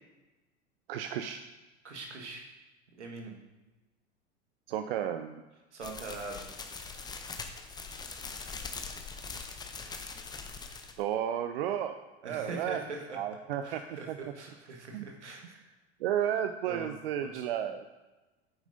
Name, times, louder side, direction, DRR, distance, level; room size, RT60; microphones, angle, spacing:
voice 1, 0.9-1.4 4.7-5.4 11.0-12.0 12.2-12.8 13.1-14.2 14.9-15.1 16.0-17.8, right 10 dB, 55° right, 8 dB, 0.6 m, -32 dB
voice 2, 1.8-2.4 3.0-3.4 5.7-6.5 12.2-13.2 13.6-15.6 16.7-16.9 17.2-17.4, right 3 dB, 75° right, 1 dB, 1.7 m, -42 dB
sound 1, 5.8-11.0, left 4 dB, 10° left, 0.7 m, -42 dB
9.2 x 8.9 x 2.7 m, 1.1 s
figure-of-eight pair, 85°, 35 cm